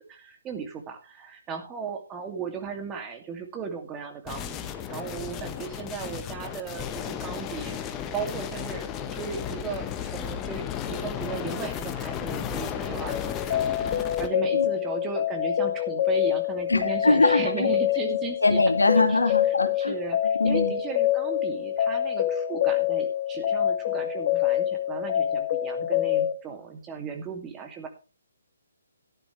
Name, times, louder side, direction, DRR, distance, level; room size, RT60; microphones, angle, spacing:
voice 1, 0.1-7.8 8.1-18.6 19.0-19.2 19.8-27.9, right 6 dB, 15° right, 4 dB, 2.3 m, -36 dB
sound 1, 4.3-14.3, left 9 dB, 20° left, 1.1 m, -34 dB
sound 2, 13.1-26.3, left 11 dB, 40° left, 1.1 m, -26 dB
voice 2, 13.8-14.2 14.5-14.7 16.7-17.7 18.4-19.9 20.4-20.7, left 3 dB, 85° left, 6 dB, 2.2 m, -23 dB
14.0 x 11.0 x 3.2 m, 0.33 s
figure-of-eight pair, 140°, 0 cm